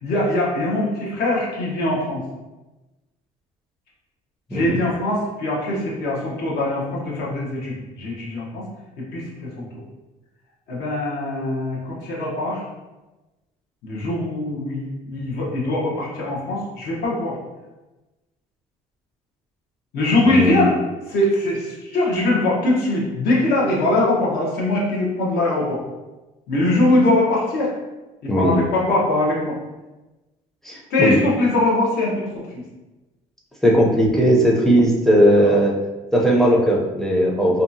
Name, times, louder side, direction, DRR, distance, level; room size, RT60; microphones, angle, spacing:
voice 1, 0.0-2.2 4.5-8.6 9.0-9.7 10.7-12.7 13.8-17.4 19.9-20.8 21.1-25.8 26.5-27.7 28.2-29.6 30.9-32.6 35.4-35.6, left 2 dB, 70° left, -4 dB, 0.9 m, -22 dB
voice 2, 20.3-20.7 28.3-28.6 30.6-31.2 33.6-35.7 36.1-37.6, equal, ahead, -2 dB, 0.5 m, -17 dB
2.7 x 2.3 x 2.6 m, 1.1 s
cardioid pair, 110°, 17 cm